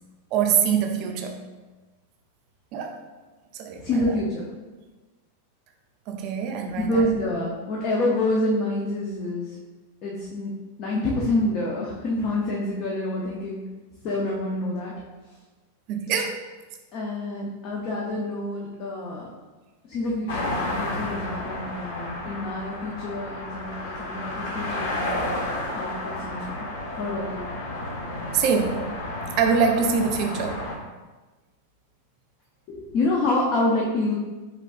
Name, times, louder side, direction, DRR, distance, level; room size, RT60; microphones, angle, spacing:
voice 1, 0.3-1.4 2.7-3.0 3.5-3.8 6.1-7.1 15.9-16.4 28.3-28.9 29.4-30.7, right 6 dB, 35° right, 4 dB, 0.4 m, -24 dB
voice 2, 3.8-4.4 6.7-9.5 10.0-10.5 10.8-13.6 14.0-14.9 16.9-19.3 19.9-20.5 20.8-25.4 25.7-26.7 27.0-27.4 32.7-34.1, left 1 dB, 30° left, -4 dB, 0.6 m, -27 dB
sound 1, 20.3-30.7, left 1 dB, 55° left, 0.8 m, -31 dB
5.0 x 3.5 x 2.4 m, 1.2 s
supercardioid pair, 170°, 0 cm